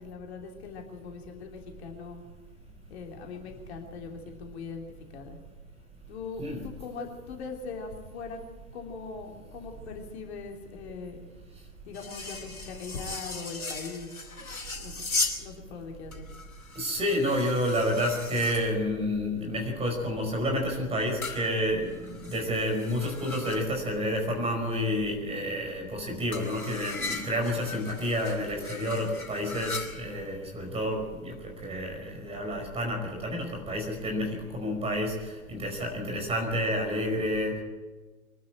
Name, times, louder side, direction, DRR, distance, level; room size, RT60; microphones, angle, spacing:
voice 1, 0.0-2.2 2.9-5.4 6.1-8.4 8.7-11.2 11.8-14.2 14.7-15.0 15.4-16.3, left 4 dB, 45° left, 2 dB, 3.1 m, -41 dB
sound 1, 11.9-15.4 16.1-18.7 21.2-23.8 26.3-30.4, left 3 dB, 75° left, 3.9 m, -37 dB
voice 2, 16.7-37.6, equal, 15° right, 2 dB, 5.1 m, -30 dB
24.0 x 12.5 x 8.8 m, 1.3 s
figure-of-eight pair, 110°, 43 cm